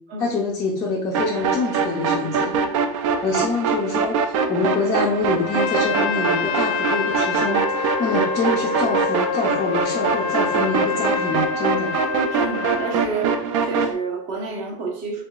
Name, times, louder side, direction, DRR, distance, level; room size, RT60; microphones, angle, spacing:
voice 1, 0.2-2.6 3.2-11.9, left 4 dB, 15° left, -3 dB, 0.4 m, -26 dB
sound 1, 1.1-13.9, right 5 dB, 60° right, 0.5 m, -23 dB
voice 2, 2.5-2.9 12.3-15.2, right 4 dB, 40° right, 1 dB, 0.9 m, -30 dB
Trumpet, 5.4-13.0, left 7 dB, 90° left, 0.5 m, -27 dB
3.6 x 3.5 x 2.3 m, 0.66 s
supercardioid pair, 175°, 18 cm